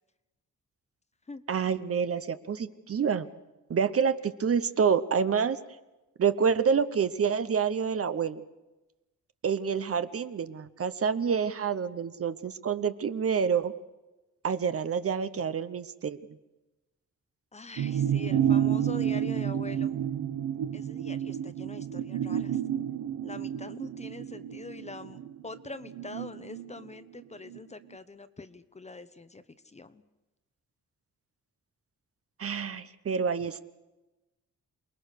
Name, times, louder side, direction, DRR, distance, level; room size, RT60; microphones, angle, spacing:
voice 1, 1.5-3.3 3.7-5.6 6.2-8.4 9.4-13.7 14.4-16.2 32.4-33.6, right 6 dB, 50° right, 12 dB, 1.0 m, -27 dB
voice 2, 17.5-20.0 20.7-22.6 23.2-30.0, left 3 dB, 20° left, 12 dB, 0.9 m, -44 dB
sound 1, 17.8-27.6 27.9-28.0, right 9 dB, 90° right, 1.2 m, -30 dB
28.5 x 20.5 x 6.7 m, 1.0 s
wide cardioid pair, 150°, 31 cm